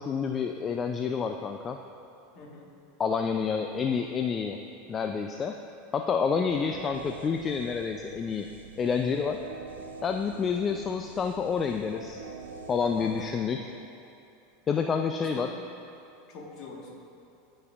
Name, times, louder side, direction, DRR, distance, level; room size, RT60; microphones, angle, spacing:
voice 1, 0.0-1.8 3.0-4.6 4.9-5.6 5.9-8.5 8.8-9.4 10.0-12.2 12.7-13.6 14.7-15.5, left 6 dB, 30° left, 5 dB, 0.3 m, -28 dB
voice 2, 2.3-2.7 6.5-6.8 10.7-10.8 12.9-13.4 15.2-15.5 16.3-17.0, left 3 dB, 50° left, -1 dB, 1.4 m, -44 dB
sound 1, 6.5-14.1, right 4 dB, 90° right, 0.5 m, -46 dB
14.0 x 5.3 x 2.4 m, 2.7 s
hypercardioid pair, 100°, 0 cm